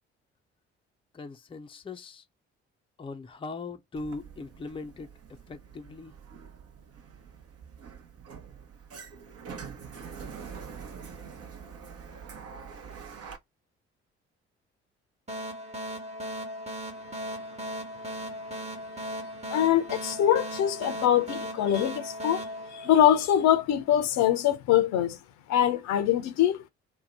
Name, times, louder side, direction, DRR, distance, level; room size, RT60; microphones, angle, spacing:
voice 1, 1.1-2.2 3.0-5.1 5.5-6.1, left 3 dB, 15° left, 0.6 m, -40 dB
Sliding door, 4.0-13.4, right 6 dB, 45° right, 0.9 m, -45 dB
sound 1, 15.3-23.6, equal, 20° right, 1.2 m, -37 dB
voice 2, 19.5-22.5 22.7-25.2 25.5-26.7, left 11 dB, 55° left, 0.7 m, -23 dB
2.7 x 2.2 x 4.1 m
figure-of-eight pair, 45°, 33 cm